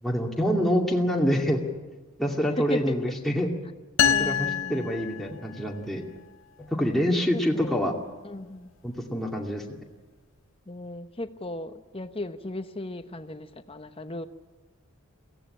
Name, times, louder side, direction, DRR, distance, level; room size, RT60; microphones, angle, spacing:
voice 1, 0.0-1.6 2.2-3.5 4.0-6.1 6.6-7.9 8.8-9.6, equal, ahead, -1 dB, 2.4 m, -26 dB
voice 2, 2.4-3.0 4.1-4.9 7.3-7.8 8.2-8.7 10.7-14.3, left 1 dB, 25° left, 9 dB, 1.0 m, -36 dB
sound 1, 4.0-5.8, left 9 dB, 60° left, 0.8 m, -26 dB
23.0 x 17.0 x 10.0 m, 1.3 s
head